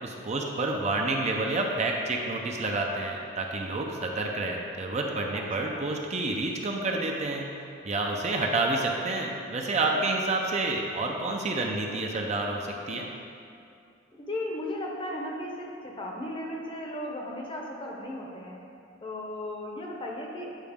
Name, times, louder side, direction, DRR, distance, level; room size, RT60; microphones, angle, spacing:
voice 1, 0.0-7.5 7.8-13.1, right 2 dB, 35° right, 1 dB, 0.6 m, -29 dB
voice 2, 9.7-10.0 14.2-18.6 19.0-20.6, left 1 dB, 25° left, -1 dB, 0.8 m, -36 dB
9.0 x 4.7 x 3.5 m, 2.5 s
head